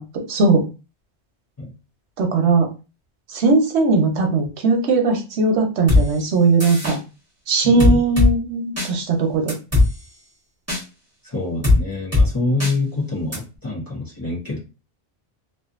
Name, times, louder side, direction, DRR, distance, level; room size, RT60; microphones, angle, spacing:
voice 1, 0.3-0.6 2.2-2.7 3.3-7.0 7.5-9.5, right 3 dB, 90° right, 3 dB, 1.0 m, -18 dB
sound 1, 5.9-6.0 6.6-7.0 7.8-8.3 8.8-8.9 9.5-9.9 10.7-10.8 11.6-11.8 12.1-12.3 12.6-12.7 13.3-13.4, left 2 dB, 15° right, 1.2 m, -16 dB
voice 2, 7.6-8.0 11.2-14.6, left 2 dB, 25° left, -4 dB, 0.6 m, -25 dB
2.6 x 2.3 x 2.4 m, 0.31 s
omnidirectional pair, 1.1 m